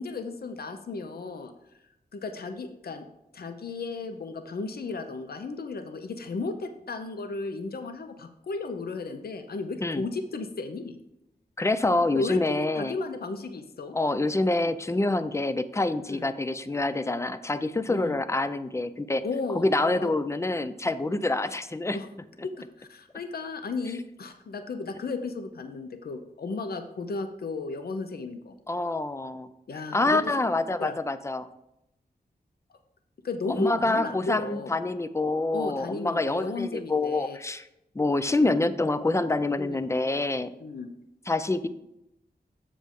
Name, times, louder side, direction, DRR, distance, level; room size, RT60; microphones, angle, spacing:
voice 1, 0.0-1.5 2.1-3.0 3.3-11.0 12.1-14.0 16.1-16.3 17.9-18.1 19.2-20.1 21.9-22.1 22.4-28.5 29.7-30.3 30.8-31.0 33.2-34.7 35.5-37.4 39.6-39.8 40.6-40.9, left 3 dB, 65° left, 8 dB, 0.6 m, -34 dB
voice 2, 11.6-12.9 13.9-19.2 19.5-22.0 28.7-29.5 29.9-31.5 33.5-37.7 38.0-40.5 41.3-41.7, left 2 dB, 15° left, 13 dB, 0.4 m, -26 dB
7.4 x 6.9 x 3.7 m, 0.86 s
wide cardioid pair, 85°, 17 cm